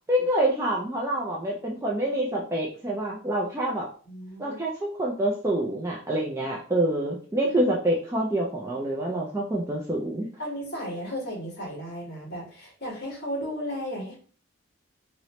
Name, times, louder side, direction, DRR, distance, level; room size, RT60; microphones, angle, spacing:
voice 1, 0.1-3.9 4.4-10.3, right 1 dB, 15° right, -3 dB, 0.4 m, -27 dB
voice 2, 4.0-4.6 10.4-14.2, equal, 50° left, -2 dB, 1.4 m, -34 dB
2.9 x 2.9 x 3.0 m, 0.42 s
head